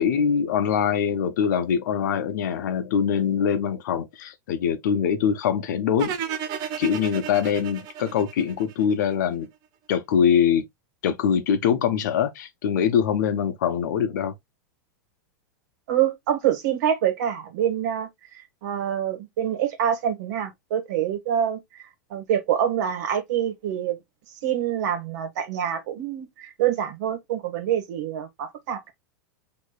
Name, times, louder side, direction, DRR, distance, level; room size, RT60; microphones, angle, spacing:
voice 1, 0.0-6.2 6.8-9.5 9.9-10.7 11.0-14.3, left 8 dB, 75° left, 0.8 m, -23 dB
sound 1, 6.0-9.1, right 8 dB, 45° right, 0.8 m, -33 dB
voice 2, 15.9-21.6 22.1-24.0 24.4-28.9, right 10 dB, 70° right, 1.4 m, -26 dB
6.3 x 3.0 x 2.3 m
supercardioid pair, 135°, 10 cm